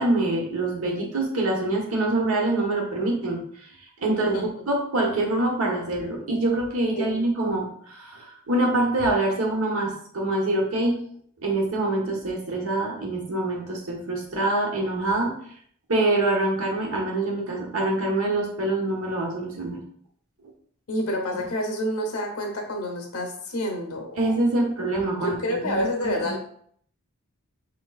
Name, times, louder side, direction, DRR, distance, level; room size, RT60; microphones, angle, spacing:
voice 1, 0.0-3.7 4.0-4.4 4.7-11.0 11.4-15.4 15.9-19.8 24.2-26.3, right 2 dB, 80° right, 0 dB, 1.1 m, -25 dB
voice 2, 4.1-4.6 6.9-7.2 20.9-24.2 25.1-26.4, equal, 90° left, 2 dB, 1.0 m, -28 dB
5.3 x 3.1 x 2.4 m, 0.63 s
head